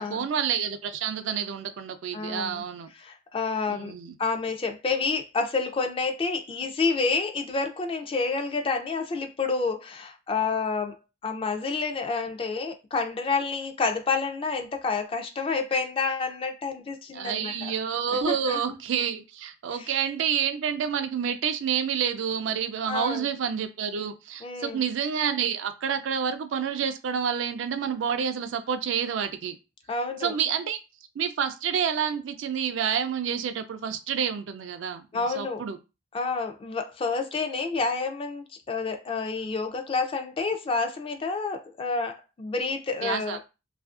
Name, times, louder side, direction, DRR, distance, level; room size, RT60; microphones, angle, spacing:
voice 1, 0.0-2.9 3.7-4.1 17.1-29.6 30.2-30.8 31.2-35.8 43.0-43.4, right 7 dB, 80° right, 0.3 m, -29 dB
voice 2, 2.1-2.6 3.0-3.9 4.2-11.0 11.2-17.7 18.3-18.8 19.8-19.9 22.9-23.3 24.4-24.8 29.9-30.3 35.1-35.6 36.1-43.5, left 4 dB, 30° left, 0.3 m, -29 dB
2.7 x 2.4 x 2.3 m
head